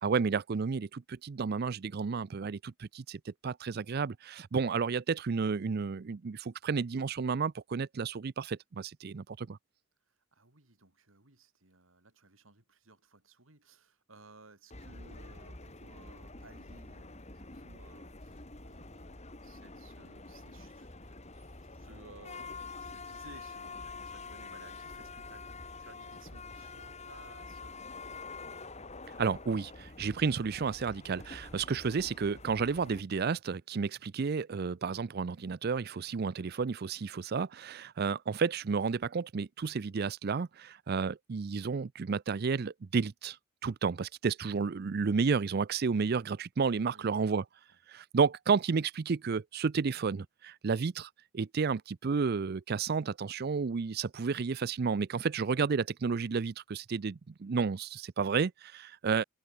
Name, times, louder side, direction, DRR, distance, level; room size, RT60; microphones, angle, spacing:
voice 1, 0.0-9.6 29.2-43.4 43.6-47.4 47.9-59.2, right 5 dB, 50° right, 0.5 m, -31 dB
voice 2, 10.1-25.5 25.8-27.9 46.7-47.3, right 3 dB, 85° right, 4.1 m, -58 dB
sound 1, 14.7-33.0, left 3 dB, 35° left, 2.9 m, -47 dB
head